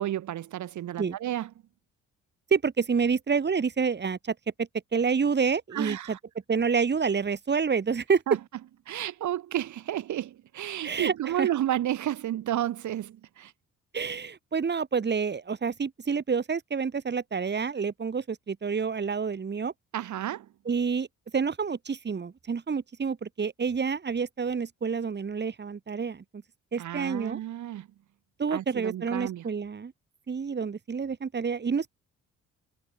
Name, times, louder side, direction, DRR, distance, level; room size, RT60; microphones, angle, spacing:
voice 1, 0.0-1.5 5.7-6.2 8.3-8.4 8.9-13.5 19.9-20.5 26.8-27.9 28.5-29.4, right 12 dB, 75° right, 3.9 m, -31 dB
voice 2, 2.5-6.2 6.5-8.2 10.8-11.5 13.9-19.7 20.6-21.1 21.3-26.4 26.7-27.4 28.4-29.9 30.3-31.9, right 5 dB, 35° right, 3.4 m, -28 dB
cardioid pair, 90°, 30 cm